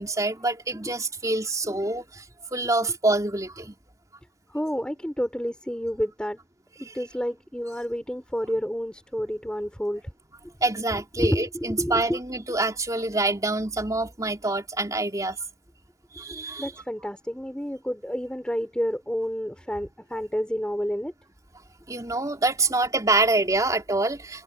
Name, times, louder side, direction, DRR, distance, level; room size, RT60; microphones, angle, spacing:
voice 1, 0.0-2.2 2.5-3.8 6.9-7.0 10.6-15.4 16.1-16.7 21.9-24.4, right 2 dB, 20° right, 3.4 m, -26 dB
voice 2, 4.5-6.4 6.8-10.0 11.2-12.2 16.6-21.1, equal, 5° left, 3.5 m, -29 dB
head